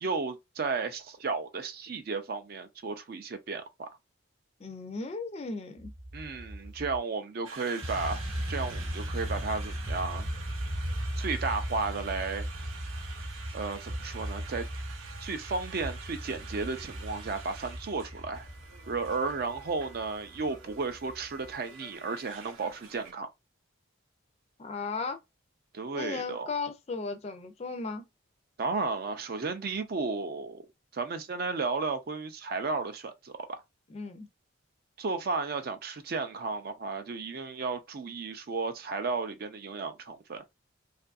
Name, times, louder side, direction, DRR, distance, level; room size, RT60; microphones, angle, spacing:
voice 1, 0.0-3.9 6.1-8.2 8.5-10.3 11.2-12.5 13.5-14.6 15.2-18.5 18.9-23.3 25.7-26.5 28.6-30.6 30.9-33.4 35.0-40.4, right 4 dB, 50° right, 0.4 m, -33 dB
voice 2, 4.6-5.9 24.6-25.2 25.9-28.0 33.9-34.3, left 4 dB, 30° left, 0.4 m, -36 dB
sound 1, 5.8-7.0 7.8-21.5, equal, 30° right, 0.9 m, -37 dB
Conversation, 7.4-23.1, right 5 dB, 90° right, 0.7 m, -47 dB
2.6 x 2.4 x 2.3 m
head